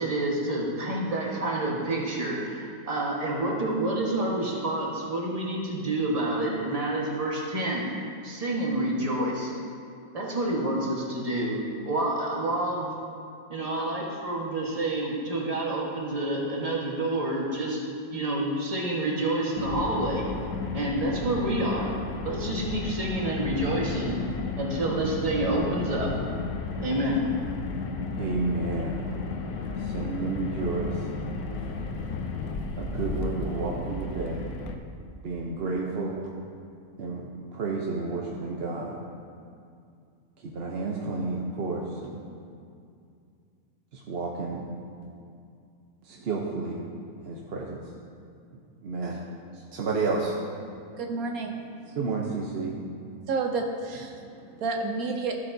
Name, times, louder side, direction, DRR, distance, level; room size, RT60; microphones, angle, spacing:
voice 1, 0.0-9.5 10.1-11.6 11.8-12.9 13.5-17.8 18.1-20.2 20.7-21.9 22.2-24.2 24.6-26.1 26.8-27.2, right 1 dB, 25° right, -3 dB, 1.4 m, -28 dB
Car, 19.6-34.8, left 3 dB, 85° left, 1.2 m, -33 dB
voice 2, 28.2-29.0 29.8-31.1 32.8-34.5 35.2-36.2 37.0-39.0 40.4-42.2 43.9-44.7 46.0-46.8 47.2-47.9 48.8-49.2 49.5-50.4 51.9-52.8, right 3 dB, 50° right, -2 dB, 0.9 m, -31 dB
voice 3, 51.0-52.0 53.3-55.3, right 3 dB, 75° right, 3 dB, 1.2 m, -31 dB
14.5 x 8.2 x 2.7 m, 2.4 s
omnidirectional pair, 1.5 m